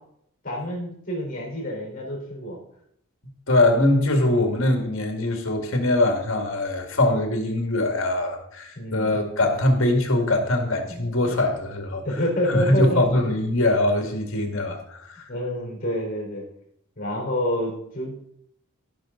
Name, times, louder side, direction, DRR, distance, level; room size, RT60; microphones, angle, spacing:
voice 1, 0.4-2.6 8.8-9.1 10.9-11.1 12.0-13.1 15.3-16.4 17.0-18.3, left 1 dB, 40° left, -1 dB, 3.9 m, -28 dB
voice 2, 3.5-12.0 12.5-15.3, left 1 dB, 60° left, 4 dB, 2.0 m, -22 dB
15.0 x 6.2 x 3.8 m, 0.71 s
head